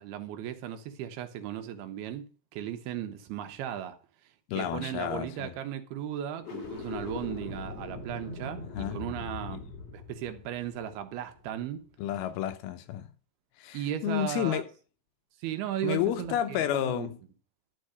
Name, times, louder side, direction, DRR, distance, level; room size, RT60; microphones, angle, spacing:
voice 1, 0.0-2.2 2.5-4.0 4.6-9.6 9.9-11.8 13.7-14.6 15.4-17.1, right 10 dB, 80° right, 2.8 m, -36 dB
voice 2, 4.5-5.5 8.6-9.0 12.0-13.1 13.6-14.7 15.8-17.2, left 11 dB, 80° left, 2.5 m, -31 dB
sound 1, 6.3-11.6, left 4 dB, 45° left, 2.9 m, -41 dB
11.5 x 4.7 x 7.8 m
omnidirectional pair, 4.7 m